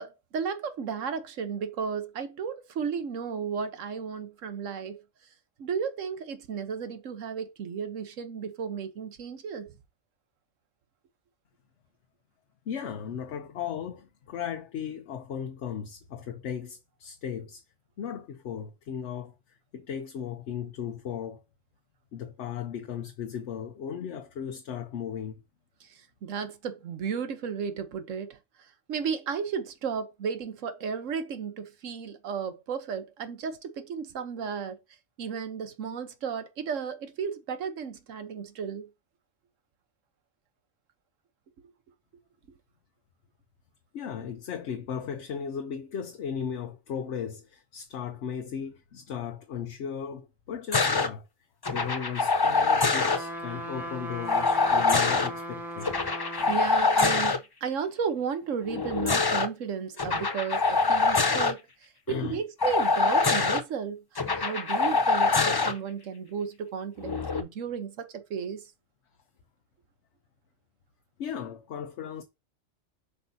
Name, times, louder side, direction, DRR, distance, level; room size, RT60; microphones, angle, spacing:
voice 1, 0.0-5.0 5.6-9.7 25.8-34.8 35.2-38.9 56.5-68.7, right 6 dB, 80° right, 1.3 m, -34 dB
voice 2, 12.7-17.6 18.0-19.4 19.7-21.4 22.1-25.4 43.9-51.3 51.7-55.9 62.1-62.4 71.2-72.2, left 8 dB, 65° left, 1.0 m, -36 dB
sound 1, 50.7-51.1 51.6-53.2 54.3-55.3 55.8-57.4 58.7-59.5 60.0-61.5 62.6-63.6 64.2-65.7 67.0-67.4, left 4 dB, 35° left, 0.4 m, -24 dB
sound 2, 52.9-56.6 57.1-57.2, right 1 dB, ahead, 1.6 m, -37 dB
7.8 x 5.5 x 2.7 m
omnidirectional pair, 1.3 m